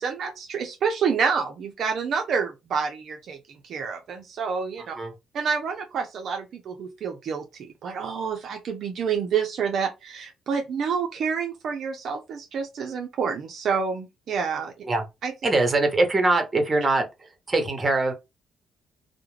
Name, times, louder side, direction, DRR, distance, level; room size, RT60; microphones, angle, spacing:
voice 1, 0.0-4.9 5.3-14.7 15.2-15.3, right 6 dB, 65° right, 0.5 m, -28 dB
voice 2, 15.4-18.1, right 2 dB, 25° right, 0.9 m, -23 dB
2.3 x 2.1 x 3.1 m
cardioid pair, 90°, 0 cm